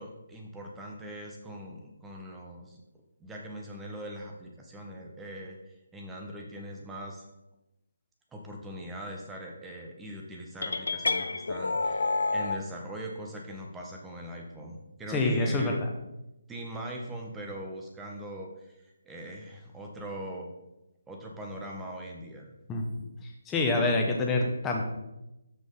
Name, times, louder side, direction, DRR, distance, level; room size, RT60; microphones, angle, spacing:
voice 1, 0.0-2.8 3.2-7.2 8.3-15.8 16.5-20.5 21.1-22.6, right 1 dB, 10° right, 0 dB, 1.4 m, -41 dB
sound 1, 10.6-12.6, left 3 dB, 70° left, 0.7 m, -29 dB
voice 2, 15.1-15.8 22.7-22.8 23.5-24.8, left 2 dB, 10° left, 0 dB, 1.4 m, -26 dB
13.0 x 5.3 x 4.0 m, 0.95 s
figure-of-eight pair, 150°, 0 cm